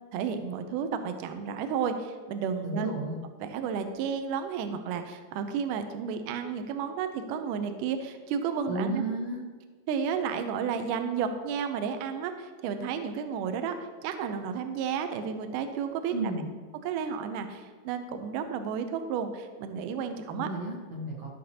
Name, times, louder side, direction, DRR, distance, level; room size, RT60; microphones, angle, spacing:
voice 1, 0.1-2.9 3.4-9.0 9.9-13.8 14.0-16.1 16.8-20.5, right 7 dB, 80° right, 8 dB, 2.0 m, -32 dB
voice 2, 2.6-3.2 8.7-9.4 16.1-16.5 20.3-21.3, right 2 dB, 60° right, -3 dB, 1.7 m, -32 dB
13.5 x 5.9 x 2.8 m, 1.5 s
omnidirectional pair, 4.3 m